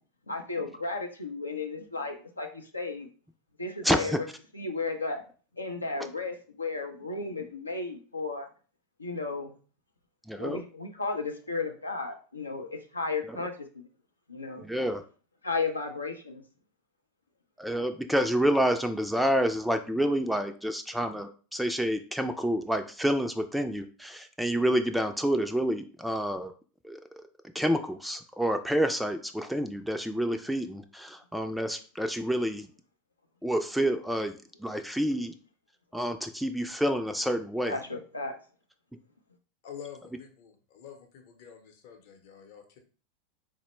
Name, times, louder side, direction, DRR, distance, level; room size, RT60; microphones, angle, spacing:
voice 1, 0.3-3.1 3.6-4.1 4.5-5.2 5.6-8.5 9.0-9.5 10.4-13.7 14.3-14.7 15.4-16.4 37.6-38.4, left 3 dB, 90° left, 3 dB, 0.4 m, -34 dB
voice 2, 3.8-4.2 10.3-10.6 13.3-13.4 14.6-15.0 17.6-26.5 26.8-27.0 27.5-32.7 33.4-35.3 35.9-37.8, equal, ahead, 7 dB, 0.3 m, -28 dB
voice 3, 39.6-42.8, left 8 dB, 55° left, 4 dB, 0.7 m, -47 dB
4.1 x 2.0 x 3.0 m, 0.39 s
figure-of-eight pair, 85°, 0 cm